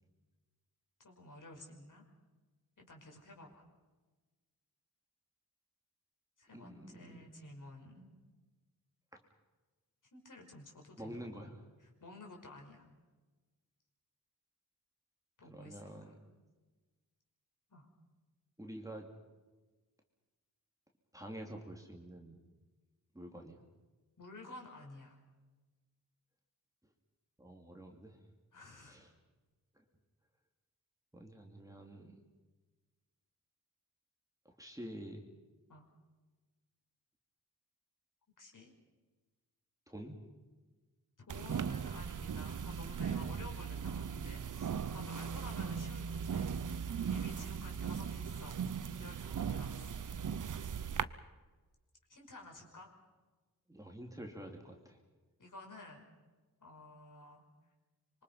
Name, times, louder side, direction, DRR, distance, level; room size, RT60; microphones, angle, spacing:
voice 1, 1.0-2.0 2.8-3.6 6.4-8.1 10.1-11.2 11.8-12.9 15.4-16.2 17.7-17.9 24.2-25.2 28.5-29.0 35.7-35.9 38.4-38.7 41.3-46.5 47.0-48.6 49.0-50.0 52.1-52.9 55.4-56.0 56.6-57.4, left 2 dB, 55° left, 1 dB, 5.5 m, -53 dB
voice 2, 6.5-7.3 11.0-11.6 15.5-16.2 18.6-19.1 21.1-22.4 23.1-23.6 27.4-28.2 28.8-29.1 29.7-29.8 31.1-32.2 34.4-35.2 39.9-40.2 53.7-55.0, right 1 dB, 10° right, 1 dB, 2.8 m, -48 dB
sound 1, 41.3-51.0, right 7 dB, 55° right, 0.8 m, -38 dB
26.0 x 24.0 x 5.6 m, 1.3 s
wide cardioid pair, 100°, 38 cm